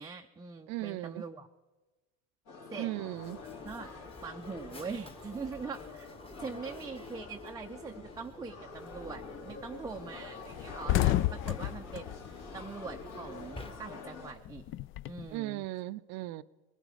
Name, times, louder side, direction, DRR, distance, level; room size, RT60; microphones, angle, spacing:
voice 1, 0.0-1.5 2.7-2.9 3.2-3.3 3.6-3.9 4.2-6.1 6.4-14.7 15.0-15.7, right 5 dB, 10° right, 0.6 m, -43 dB
voice 2, 0.7-1.2 2.7-3.4 15.3-16.4, right 17 dB, 50° right, 0.6 m, -37 dB
sound 1, 2.5-14.3, left 4 dB, 55° left, 3.0 m, -47 dB
Mechanisms, 3.1-14.3, left 2 dB, 15° left, 1.3 m, -51 dB
sound 2, 8.8-9.1 9.5-9.6 9.9-10.0 10.4-13.4 13.6-15.3, left 15 dB, 40° left, 0.4 m, -31 dB
20.5 x 12.0 x 4.9 m
hypercardioid pair, 95°, 34 cm